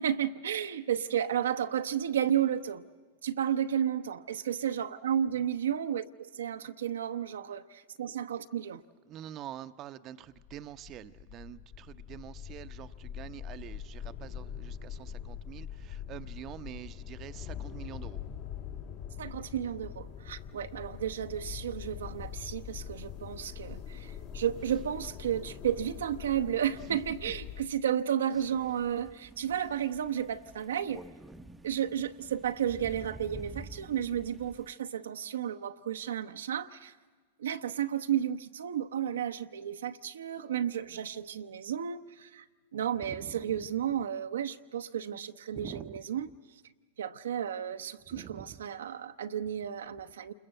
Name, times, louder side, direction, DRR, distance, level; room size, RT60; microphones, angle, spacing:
voice 1, 0.0-2.8 3.2-8.8 19.2-31.0 31.6-36.9 37.4-42.4 42.7-46.3 47.0-50.3, right 9 dB, 80° right, 0.9 m, -32 dB
voice 2, 9.1-18.2 43.0-43.4 45.5-46.0 48.1-48.6, right 11 dB, 40° right, 0.8 m, -46 dB
sound 1, 10.2-27.7, left 9 dB, 55° left, 3.0 m, -43 dB
Crow, 28.3-34.7, right 2 dB, 10° right, 0.9 m, -49 dB
28.5 x 21.5 x 7.7 m
hypercardioid pair, 105°, 0 cm